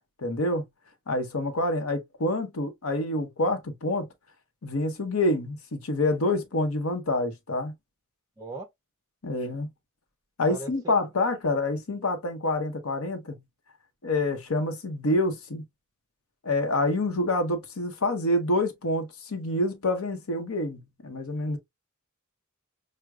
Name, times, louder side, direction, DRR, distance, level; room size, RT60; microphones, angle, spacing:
voice 1, 0.2-0.6 1.1-4.1 4.6-7.7 9.2-9.7 10.4-13.4 14.0-15.6 16.4-21.6, left 2 dB, 75° left, 0.9 m, -27 dB
voice 2, 8.4-8.7 10.5-10.9, right 2 dB, 15° right, 0.4 m, -38 dB
6.2 x 2.2 x 2.3 m
head